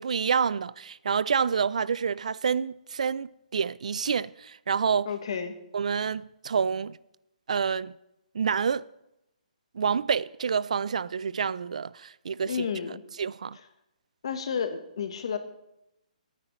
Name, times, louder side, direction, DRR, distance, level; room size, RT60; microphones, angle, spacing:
voice 1, 0.0-5.1 5.7-7.0 7.5-7.9 8.3-8.8 9.7-12.7 13.2-13.6, right 6 dB, 55° right, 0.3 m, -28 dB
voice 2, 5.0-5.5 12.4-13.0 14.2-15.4, left 7 dB, 40° left, 1.0 m, -31 dB
19.0 x 9.7 x 3.1 m
hypercardioid pair, 180°, 4 cm